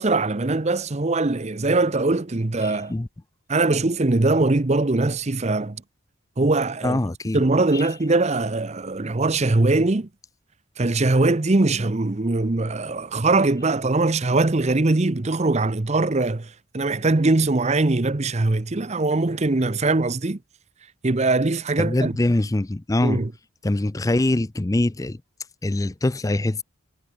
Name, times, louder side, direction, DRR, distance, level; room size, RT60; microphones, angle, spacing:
voice 1, 0.0-2.9 3.5-5.8 6.4-7.0 7.3-10.1 10.8-20.4 21.0-22.1 23.0-23.3, right 2 dB, 30° right, 0.7 m, -21 dB
voice 2, 2.6-3.1 6.8-7.4 7.7-7.9 21.8-23.2 23.6-25.2 25.6-26.6, left 1 dB, 15° left, 0.4 m, -23 dB
head